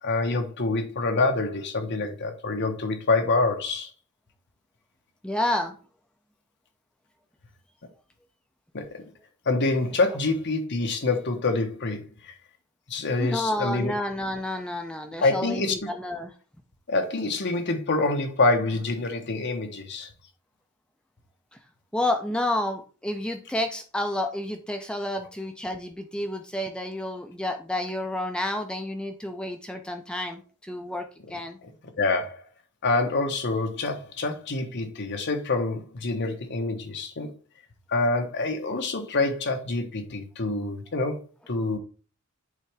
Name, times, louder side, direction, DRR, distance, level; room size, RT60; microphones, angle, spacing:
voice 1, 0.0-3.9 8.7-9.1 9.5-12.3 12.9-13.9 15.2-15.7 16.9-20.1 31.3-31.4 31.6-31.7 32.0-32.4 32.8-37.3 37.9-41.2 41.5-41.8, left 3 dB, 50° left, 1.1 m, -26 dB
voice 2, 5.2-5.7 13.2-16.3 21.9-31.6, left 1 dB, 5° left, 0.5 m, -30 dB
8.3 x 3.4 x 3.4 m
head